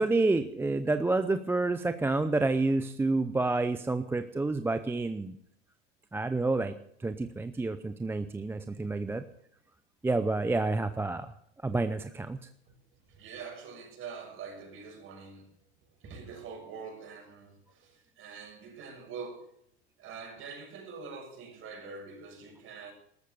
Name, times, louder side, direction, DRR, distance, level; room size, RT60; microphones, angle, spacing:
voice 1, 0.0-5.3 6.1-6.7 7.0-9.2 10.0-11.3 11.6-12.4, right 3 dB, 5° right, 10 dB, 0.6 m, -29 dB
voice 2, 13.0-15.5 16.0-19.5 20.0-22.9, right 5 dB, 40° right, 3 dB, 6.6 m, -44 dB
13.5 x 13.0 x 6.9 m, 0.72 s
hypercardioid pair, 115°, 33 cm